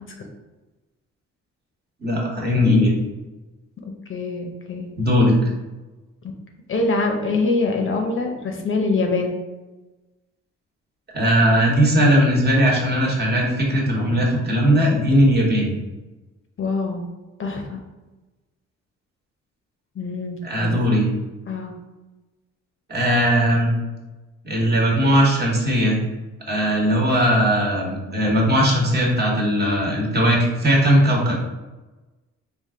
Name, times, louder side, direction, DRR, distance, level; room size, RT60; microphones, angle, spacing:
voice 1, 2.0-2.9 5.0-5.3 11.1-15.7 20.4-21.1 22.9-23.7 24.4-26.0 26.5-31.4, equal, 35° right, -2 dB, 1.2 m, -18 dB
voice 2, 4.1-4.9 6.7-9.4 16.6-17.1 17.4-17.8 20.0-20.7 21.5-21.7, left 3 dB, 40° left, 2 dB, 0.7 m, -24 dB
3.6 x 2.5 x 3.7 m, 1.1 s
cardioid pair, 90°, 30 cm